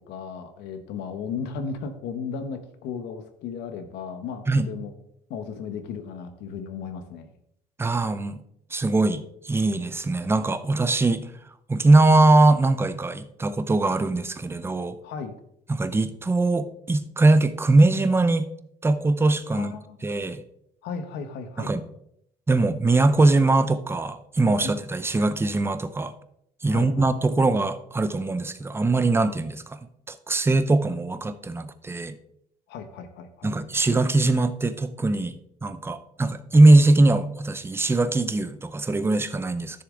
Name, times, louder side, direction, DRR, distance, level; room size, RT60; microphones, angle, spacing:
voice 1, 0.0-4.9 5.3-7.3 15.0-15.3 19.5-20.1 20.8-21.7 24.4-24.7 26.7-27.1 32.7-33.5, left 6 dB, 85° left, 8 dB, 1.2 m, -35 dB
voice 2, 7.8-8.4 8.7-11.3 11.7-15.0 15.7-18.5 18.8-19.7 20.0-20.4 21.6-21.8 22.5-26.1 26.6-29.8 30.1-32.2 33.4-35.3 35.6-39.8, right 2 dB, 15° right, 11 dB, 0.7 m, -21 dB
11.0 x 6.8 x 3.8 m, 0.73 s
cardioid pair, 110°, 17 cm